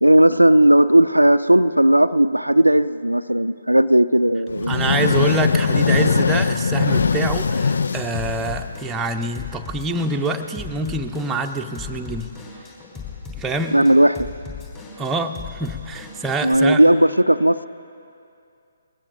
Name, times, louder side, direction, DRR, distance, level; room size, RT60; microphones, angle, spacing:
voice 1, 0.0-4.8 13.7-14.3 16.4-17.7, right 1 dB, 90° right, 12 dB, 0.3 m, -15 dB
sound 1, 4.5-9.1, left 5 dB, 60° left, 0.3 m, -21 dB
voice 2, 4.7-12.3 13.4-13.8 15.0-16.8, right 2 dB, 10° right, 4 dB, 0.6 m, -25 dB
Drum kit / Drum, 7.0-16.6, left 5 dB, 20° left, 3.3 m, -37 dB
21.5 x 19.0 x 2.6 m, 2.5 s
figure-of-eight pair, 135°, 0 cm